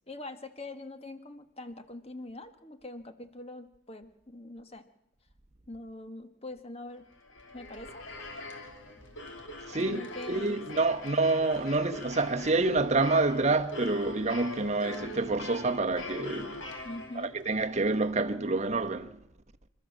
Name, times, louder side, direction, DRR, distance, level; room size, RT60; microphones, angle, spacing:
voice 1, 0.1-4.8 5.7-7.0 7.5-8.1 9.9-10.8 16.8-17.3, left 2 dB, 30° left, 1.5 m, -43 dB
sound 1, 7.1-17.6, left 1 dB, 60° left, 2.8 m, -42 dB
voice 2, 9.7-16.6 17.2-19.2, right 3 dB, 35° right, 1.0 m, -28 dB
27.0 x 13.0 x 7.4 m
head